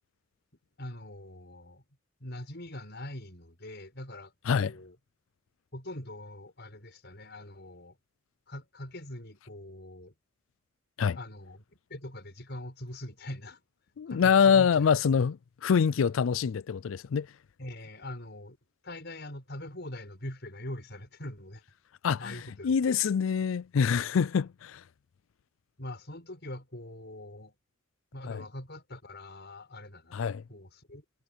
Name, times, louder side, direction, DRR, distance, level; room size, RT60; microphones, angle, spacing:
voice 1, 0.8-1.8 2.2-5.0 5.7-8.0 8.5-10.1 11.1-11.6 11.9-13.6 14.1-14.9 17.6-18.6 18.8-21.6 22.2-22.7 25.8-27.5 28.1-30.2 30.5-31.0, left 1 dB, 60° left, 6.6 m, -42 dB
voice 2, 14.0-17.3 22.0-22.4 22.6-24.8 28.3-28.4 30.1-30.4, left 6 dB, 80° left, 0.4 m, -25 dB
head